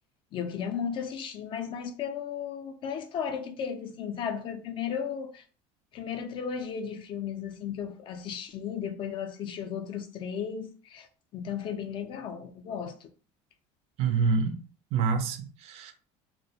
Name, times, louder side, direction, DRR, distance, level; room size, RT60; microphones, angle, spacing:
voice 1, 0.3-5.4 5.9-11.1 11.3-13.1, left 7 dB, 40° left, 0.3 m, -35 dB
voice 2, 14.0-14.6 14.9-15.9, right 5 dB, 50° right, 0.4 m, -27 dB
2.3 x 2.1 x 2.7 m
cardioid pair, 140°, 13 cm